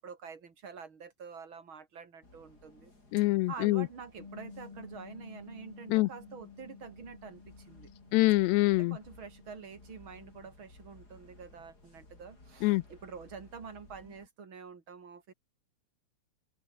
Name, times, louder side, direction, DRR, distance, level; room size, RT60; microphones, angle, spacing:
voice 1, 0.0-2.9 3.5-7.9 8.8-15.3, right 5 dB, 30° right, 2.9 m, -47 dB
sound 1, 2.2-14.3, left 2 dB, 20° left, 5.7 m, -58 dB
voice 2, 3.1-3.9 5.9-6.1 8.1-9.0 12.6-12.8, left 20 dB, 90° left, 2.4 m, -25 dB
Bass guitar, 4.2-10.4, left 4 dB, 50° left, 8.3 m, -53 dB
omnidirectional pair, 5.7 m